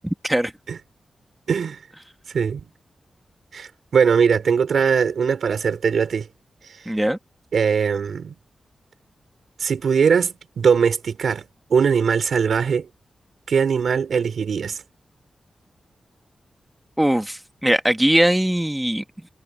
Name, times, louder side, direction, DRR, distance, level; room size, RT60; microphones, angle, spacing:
voice 1, 1.5-1.8 2.3-2.6 3.5-6.3 6.6-6.8 7.5-8.3 9.6-11.4 11.7-12.9 13.5-14.8, right 6 dB, 75° right, 2.8 m, -20 dB
voice 2, 6.8-7.2 17.0-19.3, right 1 dB, 5° right, 1.6 m, -20 dB
wide cardioid pair, 115°, 0 cm